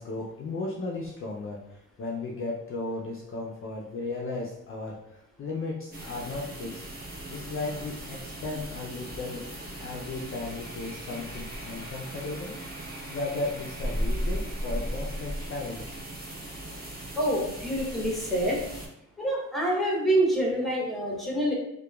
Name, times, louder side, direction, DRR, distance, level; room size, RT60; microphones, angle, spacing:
voice 1, 0.0-6.8 7.3-9.4 9.8-12.5 13.1-16.0, left 3 dB, 40° left, -2 dB, 0.4 m, -35 dB
sound 1, 5.9-18.9, right 1 dB, 30° right, 0.7 m, -37 dB
voice 2, 17.2-18.6 19.2-21.5, right 1 dB, ahead, -3 dB, 0.8 m, -26 dB
2.8 x 2.2 x 2.2 m, 0.80 s
cardioid pair, 80°, 32 cm